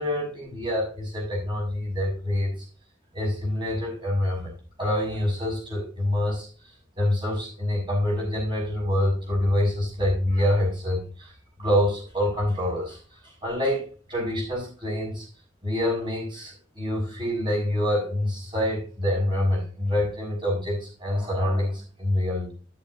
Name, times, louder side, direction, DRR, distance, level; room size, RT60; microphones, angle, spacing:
voice 1, 0.0-2.5 3.1-4.5 4.8-6.5 7.0-11.3 11.6-13.0 13.4-13.8 14.1-15.2 15.6-22.5, left 1 dB, 25° right, -2 dB, 6.5 m, -26 dB
11.5 x 10.5 x 2.8 m, 0.37 s
head